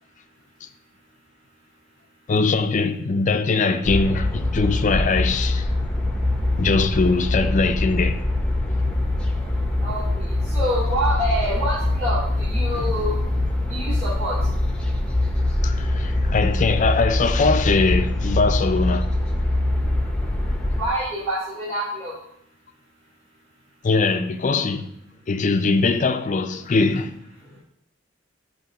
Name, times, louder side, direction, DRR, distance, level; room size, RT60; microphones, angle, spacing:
voice 1, 2.3-5.7 6.6-8.2 12.7-12.9 15.6-19.1 23.8-24.9 25.3-27.1, left 4 dB, 40° left, 0.5 m, -21 dB
sound 1, 3.8-20.9, left 1 dB, 5° left, 0.7 m, -23 dB
voice 2, 9.8-13.1 13.7-14.3 20.7-22.1, equal, 35° right, 2.5 m, -27 dB
7.5 x 3.1 x 5.5 m
head